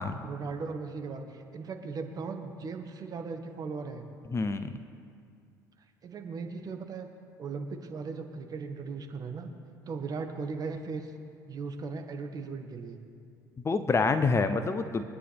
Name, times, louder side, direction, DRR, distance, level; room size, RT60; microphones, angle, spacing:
voice 1, 0.2-4.1 6.0-7.1 7.4-9.5 9.9-11.1 11.5-13.0, right 4 dB, 40° right, 5 dB, 1.7 m, -37 dB
voice 2, 4.3-4.7 13.6-15.0, left 4 dB, 25° left, 10 dB, 0.9 m, -27 dB
24.0 x 9.7 x 3.6 m, 2.3 s
hypercardioid pair, 60°, 10 cm